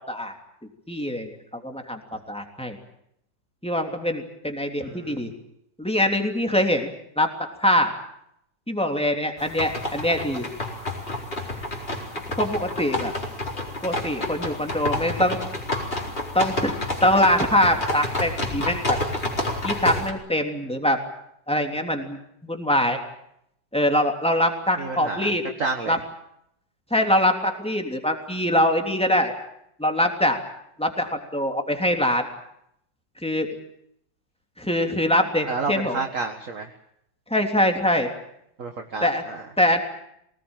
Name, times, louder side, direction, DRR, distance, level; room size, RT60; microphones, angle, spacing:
voice 1, 0.9-2.8 3.6-5.3 5.8-7.9 8.7-10.5 12.4-13.1 13.8-15.4 16.3-16.7 17.0-19.0 19.6-21.0 21.5-23.0 23.7-25.4 25.9-26.0 26.9-29.3 29.8-30.4 30.8-32.3 33.2-33.5 34.6-36.0 37.3-38.1 39.0-39.2 39.6-39.8, left 1 dB, 5° left, 4 dB, 3.1 m, -23 dB
voice 2, 4.8-5.2 24.8-25.3 25.6-26.0 35.5-36.7 38.6-39.4, right 4 dB, 45° right, 4 dB, 2.0 m, -30 dB
sound 1, 9.4-20.1, left 2 dB, 30° left, 4.6 m, -29 dB
24.5 x 19.0 x 9.1 m, 0.75 s
omnidirectional pair, 2.0 m